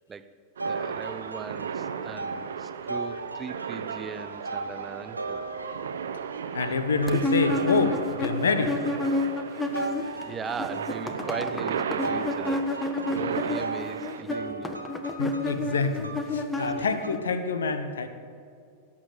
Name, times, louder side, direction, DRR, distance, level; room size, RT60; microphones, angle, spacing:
voice 1, 0.6-5.5 9.1-9.3 10.2-14.8 16.6-16.8, right 6 dB, 20° right, 12 dB, 0.7 m, -39 dB
sound 1, 0.6-14.2, right 7 dB, 65° right, 0.8 m, -35 dB
sound 2, 0.6-6.4 7.0-8.7 9.7-17.1, right 3 dB, 85° right, 1.1 m, -37 dB
voice 2, 6.5-8.8 15.2-18.1, left 4 dB, 70° left, 10 dB, 1.1 m, -27 dB
sound 3, 7.1-10.2 10.5-17.2, left 2 dB, 10° left, 1.2 m, -30 dB
17.5 x 7.4 x 8.1 m, 2.4 s
figure-of-eight pair, 90°, 0 cm